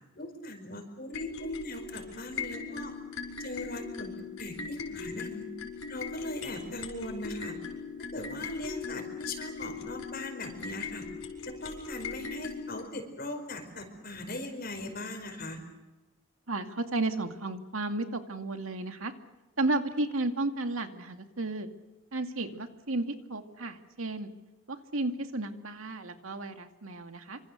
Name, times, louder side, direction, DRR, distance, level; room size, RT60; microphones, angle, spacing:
voice 1, 0.2-2.9 3.4-4.1 4.4-5.5 5.9-7.5 8.1-11.0 11.4-15.6, left 1 dB, 45° left, 5 dB, 4.8 m, -39 dB
sound 1, 1.1-12.8, left 5 dB, 85° left, 5.4 m, -40 dB
voice 2, 16.5-19.1 19.6-21.7 22.1-24.3 24.7-27.4, right 2 dB, 80° right, 6 dB, 2.2 m, -33 dB
26.5 x 26.0 x 6.6 m, 1.1 s
head